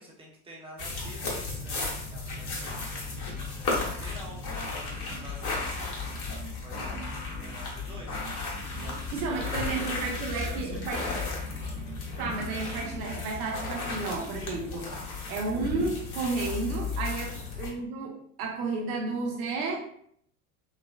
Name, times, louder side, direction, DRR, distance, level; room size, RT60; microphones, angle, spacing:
voice 1, 0.0-2.7 3.6-6.0 6.5-11.2 17.2-17.4, right 1 dB, 10° right, -3 dB, 0.9 m, -48 dB
sound 1, 0.8-17.7, left 3 dB, 40° left, 1.1 m, -34 dB
sound 2, 2.3-14.9, right 6 dB, 30° right, 0.3 m, -48 dB
voice 2, 9.1-11.2 12.2-14.9 15.3-19.8, right 3 dB, 70° right, -1 dB, 0.8 m, -32 dB
3.1 x 2.1 x 2.4 m, 0.66 s
hypercardioid pair, 75°, 46 cm